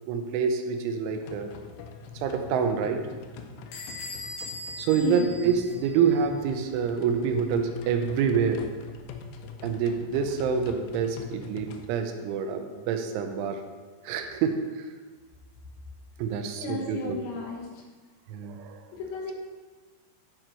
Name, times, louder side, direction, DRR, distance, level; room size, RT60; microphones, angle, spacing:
voice 1, 0.1-1.5 2.2-3.1 4.8-8.7 9.6-13.6 14.0-14.9 16.2-17.2 18.3-18.8, right 6 dB, 85° right, 6 dB, 3.1 m, -27 dB
sound 1, 1.1-11.9, left 5 dB, 90° left, 3.2 m, -44 dB
Bell / Door, 3.7-6.2, left 2 dB, 55° left, 2.4 m, -40 dB
voice 2, 5.0-5.3 16.6-17.8 18.9-19.3, left 3 dB, 70° left, -3 dB, 3.5 m, -33 dB
12.5 x 4.7 x 4.4 m, 1.4 s
omnidirectional pair, 5.6 m